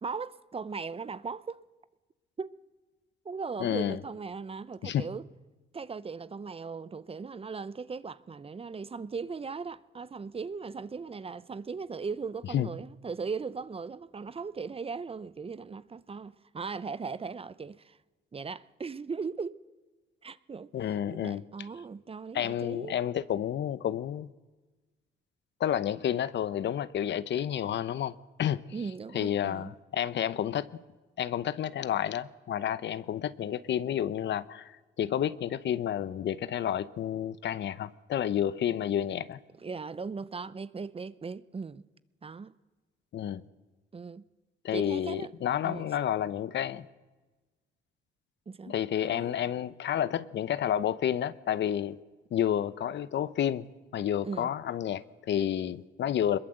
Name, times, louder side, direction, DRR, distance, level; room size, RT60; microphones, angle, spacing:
voice 1, 0.0-1.6 2.4-2.5 3.2-5.3 5.7-18.0 18.3-19.6 20.2-22.9 28.7-29.7 39.6-41.9 42.2-42.5 43.9-44.2 44.7-45.3 45.6-45.9 48.5-48.7 49.0-49.3 54.2-54.5, right 5 dB, 30° right, 0.8 m, -38 dB
voice 2, 3.6-4.0 4.8-5.0 12.5-12.7 20.7-21.4 22.3-24.3 25.6-28.6 29.1-30.7 31.2-34.7 35.0-39.4 43.1-43.4 44.6-46.9 48.7-52.0 52.3-53.7 53.9-56.4, left 10 dB, 65° left, 0.9 m, -30 dB
22.5 x 21.5 x 7.9 m
cardioid pair, 90°, 20 cm